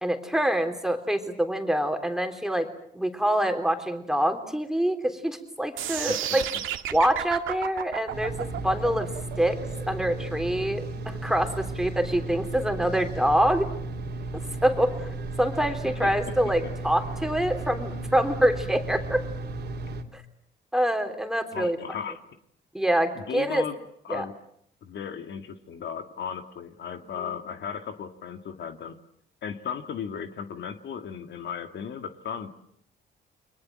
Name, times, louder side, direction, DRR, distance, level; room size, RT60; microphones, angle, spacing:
voice 1, 0.0-6.4 6.9-9.1 9.4-9.6 9.9-13.7 14.6-15.1 15.4-19.2 20.1-20.2 20.7-21.8 22.7-23.6 24.1-24.3 27.0-27.3, right 1 dB, ahead, 6 dB, 3.6 m, -25 dB
sound 1, 5.8-11.8, right 11 dB, 80° right, 2.0 m, -33 dB
sound 2, 8.1-20.0, right 2 dB, 60° right, 3.2 m, -34 dB
voice 2, 15.8-16.3 21.5-22.2 22.9-23.8 24.0-24.3 24.8-29.0 29.4-32.5, left 7 dB, 65° left, 7 dB, 2.1 m, -36 dB
29.5 x 23.0 x 7.7 m, 0.68 s
cardioid pair, 90°, 20 cm